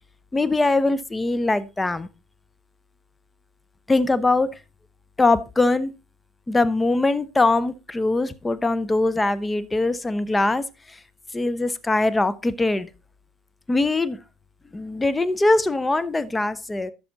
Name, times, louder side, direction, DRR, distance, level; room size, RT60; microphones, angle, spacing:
voice 1, 0.3-2.1 3.9-4.5 5.2-5.9 6.5-11.0 11.3-12.9 13.7-14.2 14.7-16.9, left 2 dB, 20° left, 15 dB, 0.9 m, -22 dB
12.0 x 7.1 x 4.0 m, 0.27 s
hypercardioid pair, 65°, 0 cm